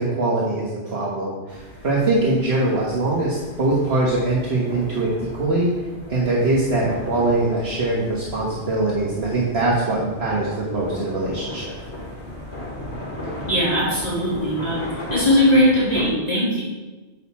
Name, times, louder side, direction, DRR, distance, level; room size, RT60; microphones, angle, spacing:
voice 1, 0.0-5.7 6.1-11.7, right 2 dB, 65° right, -5 dB, 1.5 m, -22 dB
sound 1, 1.5-16.1, left 1 dB, 70° left, 2.1 m, -36 dB
voice 2, 13.5-14.8 15.1-16.6, equal, 35° left, -9 dB, 2.6 m, -19 dB
8.3 x 6.5 x 4.2 m, 1.2 s
omnidirectional pair, 1.2 m